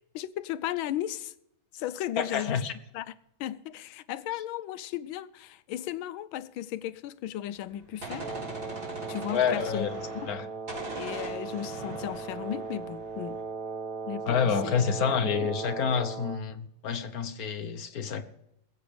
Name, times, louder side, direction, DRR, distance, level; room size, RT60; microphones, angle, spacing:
voice 1, 0.1-1.3 1.7-2.6 2.9-3.1 3.4-8.3 9.1-9.9 10.1-10.3 10.9-13.4 14.1-14.8, left 12 dB, 85° left, 1.5 m, -35 dB
voice 2, 2.2-2.7 9.3-10.0 10.3-10.5 14.3-18.2, left 7 dB, 55° left, 1.4 m, -28 dB
Gunshot gunfire, 7.6-10.4 10.7-13.4, right 2 dB, 70° right, 5.8 m, -41 dB
Wind instrument woodwind instrument, 8.2-16.5, right 4 dB, 85° right, 0.5 m, -38 dB
20.5 x 8.3 x 5.0 m
omnidirectional pair, 2.2 m